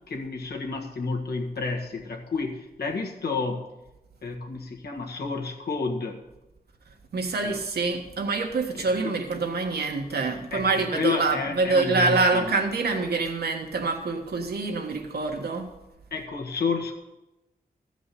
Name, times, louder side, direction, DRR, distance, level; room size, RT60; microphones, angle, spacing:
voice 1, 0.1-3.7 4.2-6.2 7.4-7.6 8.8-9.2 10.5-12.5 16.1-16.9, left 4 dB, 85° left, 1 dB, 1.7 m, -30 dB
voice 2, 7.1-15.7, right 3 dB, 85° right, 3 dB, 1.6 m, -26 dB
14.0 x 5.1 x 8.4 m, 1.0 s
wide cardioid pair, 170°, 16 cm